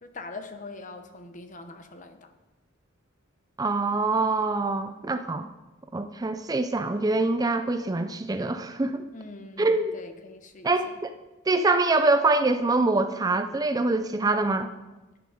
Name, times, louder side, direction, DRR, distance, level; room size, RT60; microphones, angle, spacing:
voice 1, 0.0-2.3 9.1-10.9, left 3 dB, 40° left, 7 dB, 1.0 m, -43 dB
voice 2, 3.6-5.5 5.9-9.0 9.6-10.0 10.6-11.1 11.5-14.7, right 3 dB, 20° right, 9 dB, 0.4 m, -24 dB
11.0 x 10.5 x 5.0 m, 1.1 s
head